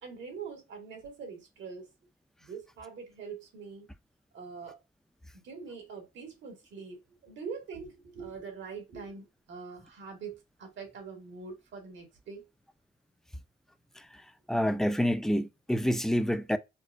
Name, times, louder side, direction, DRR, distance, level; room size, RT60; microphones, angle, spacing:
voice 1, 0.0-1.9 2.4-3.9 4.3-4.8 5.4-12.5, right 5 dB, 70° right, 1.7 m, -43 dB
voice 2, 14.5-16.6, equal, ahead, 0.4 m, -27 dB
4.4 x 2.0 x 2.4 m
cardioid pair, 90°, 20 cm